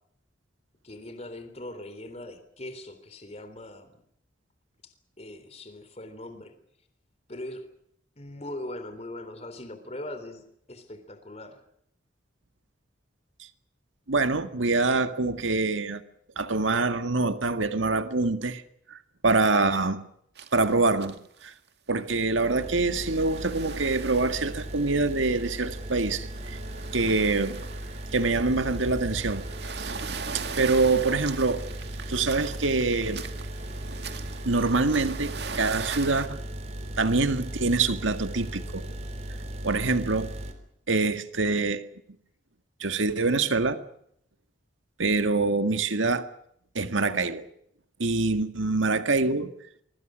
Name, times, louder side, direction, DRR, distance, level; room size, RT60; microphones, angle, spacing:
voice 1, 0.8-4.0 4.8-4.9 5.2-6.5 7.3-7.6 8.2-10.4 10.7-11.6, left 1 dB, 35° left, 3.6 m, -40 dB
voice 2, 14.1-16.0 16.4-18.6 18.9-19.0 19.2-20.0 20.5-21.2 21.4-21.5 21.9-26.6 26.9-27.6 28.1-29.5 29.8-29.9 30.3-31.6 32.1-33.2 34.5-36.4 37.0-38.8 39.6-40.3 40.9-41.8 42.8-43.8 45.0-46.3 46.8-47.5 48.0-49.5, right 3 dB, 90° right, 1.9 m, -25 dB
sound 1, 20.4-20.7 21.0-21.5 21.9-22.0 22.7-36.3, right 5 dB, 60° right, 2.2 m, -41 dB
sound 2, 22.1-40.5, right 1 dB, 35° right, 3.4 m, -37 dB
25.0 x 24.0 x 6.4 m
head